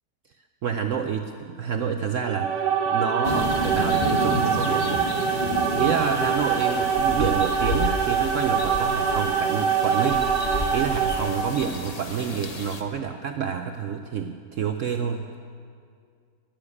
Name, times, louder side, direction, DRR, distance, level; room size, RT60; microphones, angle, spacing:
voice 1, 0.6-2.7 2.9-5.0 5.8-10.3 10.7-15.3, right 7 dB, 65° right, 6 dB, 0.8 m, -28 dB
sound 1, 2.2-11.7, right 7 dB, 85° right, 1.9 m, -24 dB
sound 2, 3.2-12.8, left 2 dB, 35° left, 0.7 m, -31 dB
14.5 x 7.3 x 9.6 m, 2.2 s
omnidirectional pair, 1.8 m